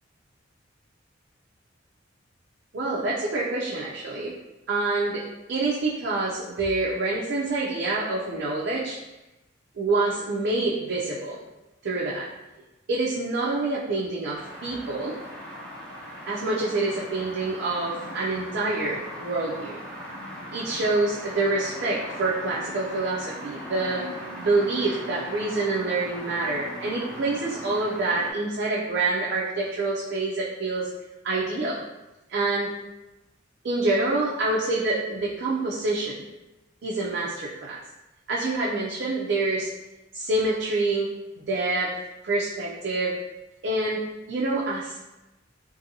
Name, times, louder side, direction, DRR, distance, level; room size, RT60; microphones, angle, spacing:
voice 1, 2.7-4.4 4.7-9.0 9.8-11.4 11.8-12.3 12.9-15.2 16.3-19.8 20.5-24.0 24.4-30.9 31.2-31.8 32.3-32.7 33.6-36.2 36.8-37.8 38.3-39.7 40.1-41.1 41.4-41.9 42.2-43.2 43.6-44.0 44.3-45.0, right 2 dB, 55° right, -5 dB, 0.4 m, -26 dB
sound 1, 14.3-28.3, equal, 5° left, 0.5 m, -39 dB
2.6 x 2.6 x 2.7 m, 1.0 s
head